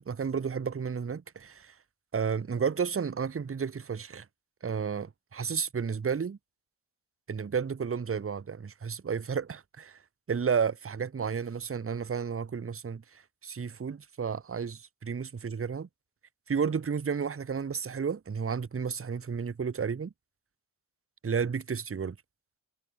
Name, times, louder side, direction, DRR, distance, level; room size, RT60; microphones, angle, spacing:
voice 1, 0.0-1.7 2.1-4.2 4.6-6.4 7.3-10.0 10.3-15.9 16.5-20.1 21.2-22.2, right 6 dB, 30° right, 0.6 m, -32 dB
wide cardioid pair, 50°, 46 cm